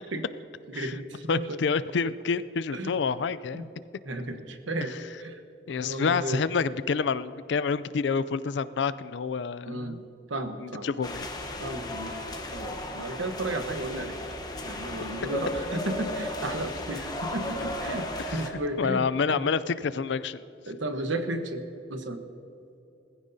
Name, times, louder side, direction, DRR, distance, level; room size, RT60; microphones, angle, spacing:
voice 1, 0.7-1.5 2.7-2.9 3.5-3.7 4.1-5.4 5.8-6.4 9.6-10.0 10.3-10.9 11.6-12.2 12.5-14.2 14.7-18.0 18.3-19.5 20.7-21.6 21.9-22.2, right 1 dB, 80° right, 7 dB, 1.1 m, -33 dB
voice 2, 1.3-3.6 4.8-5.0 5.7-10.0 10.6-11.3 18.2-20.4, left 5 dB, 65° left, 16 dB, 0.4 m, -28 dB
sound 1, 11.0-18.5, left 1 dB, 20° left, 1.0 m, -35 dB
20.5 x 15.0 x 2.7 m, 2.8 s
head